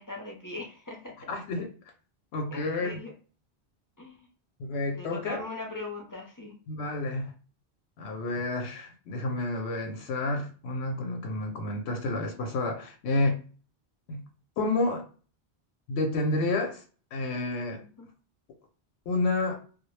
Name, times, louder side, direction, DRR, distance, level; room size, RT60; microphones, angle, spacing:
voice 1, 0.0-1.3 2.5-3.1 4.0-4.3 4.9-6.5 11.6-12.0 18.0-18.1, left 2 dB, 25° left, -2 dB, 0.4 m, -40 dB
voice 2, 1.3-1.7 2.3-3.0 4.6-5.4 6.7-7.3 8.0-13.4 14.1-14.2 14.6-15.0 15.9-16.8 17.1-17.8 19.1-19.6, left 2 dB, 90° left, 4 dB, 0.9 m, -30 dB
2.1 x 2.0 x 3.1 m, 0.38 s
omnidirectional pair, 1.1 m